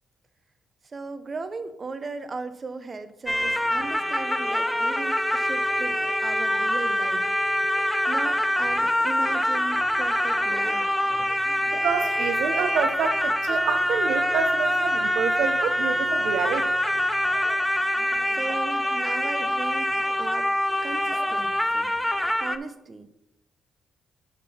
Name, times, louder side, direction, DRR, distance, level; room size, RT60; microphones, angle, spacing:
voice 1, 0.8-7.3 8.1-11.0 18.3-20.5 20.8-21.9 22.3-23.1, right 3 dB, 35° right, 0.8 m, -37 dB
sound 1, 3.3-22.6, equal, 5° left, 0.5 m, -25 dB
voice 2, 11.7-16.7, right 7 dB, 75° right, 0.7 m, -28 dB
9.6 x 3.7 x 5.6 m
cardioid pair, 90°, 0 cm